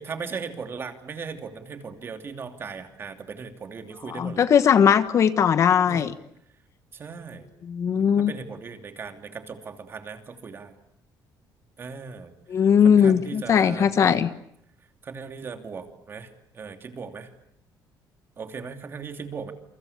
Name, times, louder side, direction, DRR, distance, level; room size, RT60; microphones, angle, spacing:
voice 1, 0.0-4.4 5.9-6.0 6.9-7.4 8.0-10.7 11.8-12.3 12.8-14.2 15.0-17.3 18.4-19.5, right 5 dB, 30° right, 6 dB, 2.9 m, -38 dB
voice 2, 4.1-6.1 7.7-8.3 12.5-14.3, left 7 dB, 40° left, 12 dB, 1.3 m, -19 dB
28.5 x 24.5 x 8.6 m, 0.74 s
cardioid pair, 160°, 8 cm